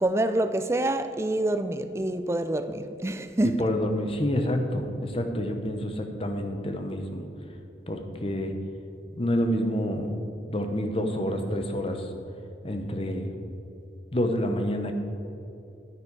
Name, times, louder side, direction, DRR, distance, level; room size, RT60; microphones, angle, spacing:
voice 1, 0.0-3.6, right 1 dB, 15° right, 0.4 m, -26 dB
voice 2, 3.6-7.2 7.9-8.5 9.1-10.1 10.5-12.1 12.6-13.3 14.1-14.9, equal, 30° left, 0.8 m, -28 dB
10.0 x 9.6 x 4.7 m
head